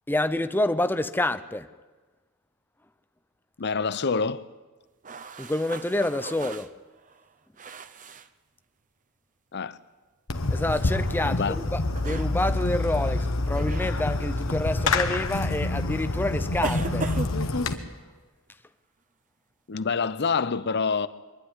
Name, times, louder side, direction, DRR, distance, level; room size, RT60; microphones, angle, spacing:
voice 1, 0.1-1.7 5.4-6.7 10.5-17.1, left 1 dB, 10° left, 0.6 m, -28 dB
voice 2, 3.6-4.4 9.5-9.8 11.2-11.6 19.7-21.1, left 5 dB, 55° left, 0.7 m, -26 dB
sound 1, 5.0-8.3 10.7-10.9 11.9-12.3 13.5-13.9 14.8-15.0 16.6-17.8, right 4 dB, 35° right, 0.7 m, -37 dB
Fireworks, 10.3-17.7, left 2 dB, 70° left, 1.4 m, -27 dB
23.5 x 11.5 x 9.9 m
head